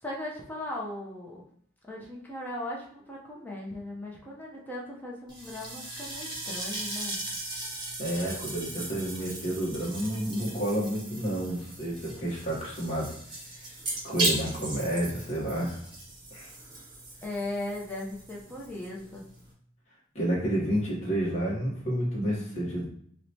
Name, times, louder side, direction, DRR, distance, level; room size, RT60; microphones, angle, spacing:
voice 1, 0.0-1.4 1.8-7.2 17.2-19.2, left 1 dB, 10° left, -3 dB, 0.6 m, -38 dB
sound 1, 5.3-19.5, right 2 dB, 25° right, 0.9 m, -37 dB
voice 2, 8.0-13.1 13.5-13.6 14.0-15.8 16.3-16.5 20.1-22.8, right 1 dB, 35° left, -5 dB, 0.9 m, -30 dB
4.6 x 2.1 x 2.7 m, 0.63 s
head